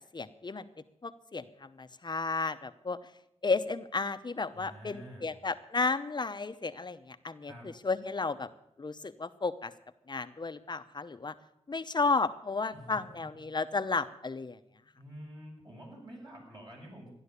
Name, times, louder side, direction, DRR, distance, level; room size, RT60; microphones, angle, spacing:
voice 1, 0.1-0.7 1.0-3.0 3.4-8.5 8.8-9.7 10.1-11.3 11.7-14.6, left 4 dB, 45° left, 10 dB, 0.9 m, -33 dB
voice 2, 4.5-5.3 7.4-7.7 12.7-13.0 13.3-13.4 15.0-17.1, equal, 40° right, -2 dB, 7.9 m, -48 dB
14.0 x 11.0 x 8.2 m, 0.77 s
wide cardioid pair, 70°, 11 cm